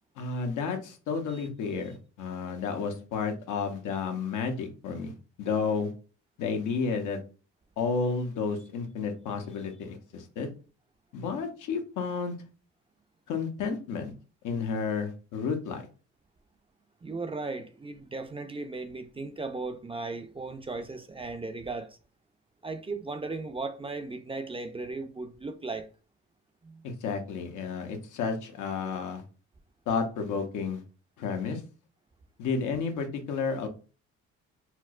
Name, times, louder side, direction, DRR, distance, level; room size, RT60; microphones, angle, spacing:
voice 1, 0.2-5.1 5.4-5.9 6.4-7.2 7.8-10.5 11.1-12.4 13.3-14.1 14.4-15.8 27.0-29.2 29.9-30.8 31.2-31.6 32.4-33.7, left 5 dB, 80° left, 0.8 m, -31 dB
voice 2, 17.0-22.0 22.6-25.9 26.6-26.8, right 3 dB, 20° right, 0.4 m, -36 dB
4.3 x 2.0 x 2.3 m
cardioid pair, 90°, 30 cm